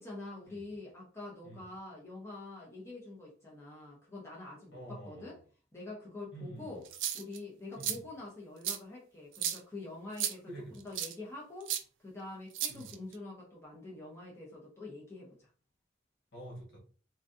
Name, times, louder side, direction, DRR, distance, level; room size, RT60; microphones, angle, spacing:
voice 1, 0.0-5.3 5.7-6.8 7.1-10.5 10.8-15.5, left 2 dB, 15° left, 0.8 m, -46 dB
voice 2, 4.7-5.4 6.3-6.8 7.7-8.0 10.4-10.9 12.7-12.9 16.3-16.8, right 1 dB, 65° left, 1.5 m, -47 dB
sound 1, 6.9-7.4 7.8-8.0 8.6-8.8 9.3-9.6 10.2-10.3 11.0-11.1 11.7-11.8 12.5-13.1, right 10 dB, 80° right, 0.4 m, -34 dB
3.9 x 2.3 x 2.6 m
head